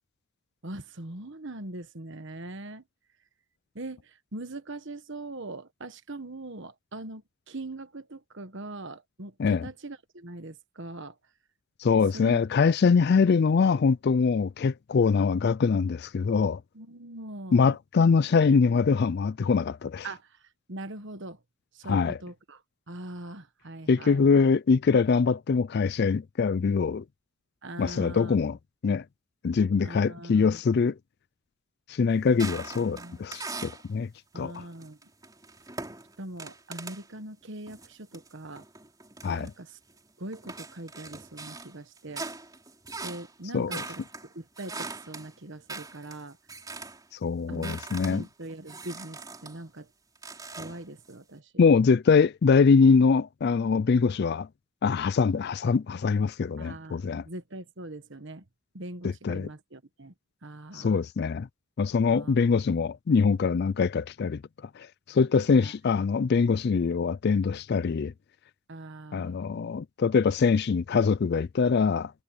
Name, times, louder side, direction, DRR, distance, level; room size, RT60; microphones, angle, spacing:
voice 1, 0.6-2.8 3.7-11.2 12.1-12.4 16.7-17.8 20.0-21.4 21.7-22.6 22.9-24.4 27.6-28.3 29.8-30.8 32.5-33.2 34.3-35.0 36.2-38.7 39.3-39.8 40.2-42.3 43.0-46.4 47.5-49.9 50.5-51.6 56.6-58.4 58.7-60.1 60.4-61.1 62.1-62.4 65.5-65.7 68.7-69.4, right 2 dB, 55° right, 1.4 m, -42 dB
voice 2, 11.8-16.6 17.5-20.1 21.9-22.2 23.9-27.0 27.8-28.6 28.8-29.0 29.4-31.0 31.9-34.1 34.4-34.6 39.2-39.5 43.5-43.8 47.2-48.2 51.6-54.5 54.8-57.2 59.0-59.5 60.7-61.5 61.8-64.4 64.8-68.1 69.1-72.1, left 5 dB, 45° left, 0.3 m, -23 dB
sound 1, 32.3-33.9 34.3-37.1 37.7-40.0 40.3-47.1 47.3-49.6 50.1-51.1, right 3 dB, 15° right, 3.9 m, -41 dB
head